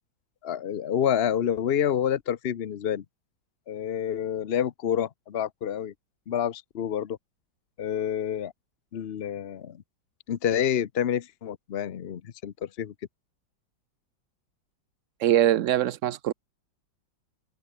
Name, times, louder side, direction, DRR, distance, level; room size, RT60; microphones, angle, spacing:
voice 1, 0.4-3.0 3.7-5.9 6.3-7.2 7.8-8.5 8.9-9.8 10.3-12.9, left 9 dB, 60° left, 0.6 m, -28 dB
voice 2, 15.2-16.3, right 12 dB, 85° right, 0.6 m, -22 dB
omnidirectional pair, 2.0 m